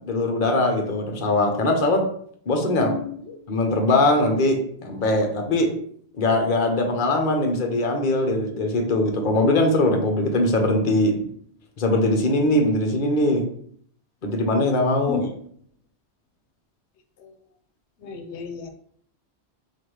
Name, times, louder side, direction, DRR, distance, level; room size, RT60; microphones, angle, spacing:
voice 1, 0.1-2.0 2.5-3.0 3.5-5.7 6.2-11.2 11.8-13.5 14.2-15.3, left 2 dB, 50° left, 3 dB, 0.9 m, -21 dB
voice 2, 2.8-3.4 15.1-15.2 17.2-17.3 18.0-18.7, left 7 dB, 85° left, 6 dB, 0.9 m, -32 dB
3.9 x 2.5 x 4.6 m, 0.62 s
omnidirectional pair, 1.1 m